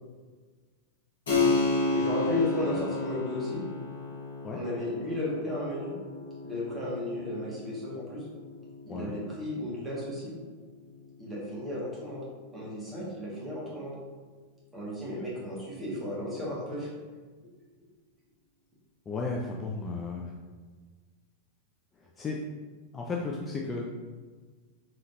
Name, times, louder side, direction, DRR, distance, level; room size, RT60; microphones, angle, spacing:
Keyboard (musical), 1.3-11.5, left 3 dB, 60° left, 1.3 m, -33 dB
voice 1, 1.9-3.6 4.5-5.9 6.4-8.2 8.8-10.3 11.2-12.2 12.5-13.9 14.7-16.9, left 1 dB, 10° right, -7 dB, 1.4 m, -34 dB
voice 2, 19.1-20.3 22.2-22.4 22.9-23.8, left 3 dB, 20° left, -1 dB, 0.4 m, -34 dB
3.7 x 3.2 x 2.6 m, 1.4 s
figure-of-eight pair, 90°, 0 cm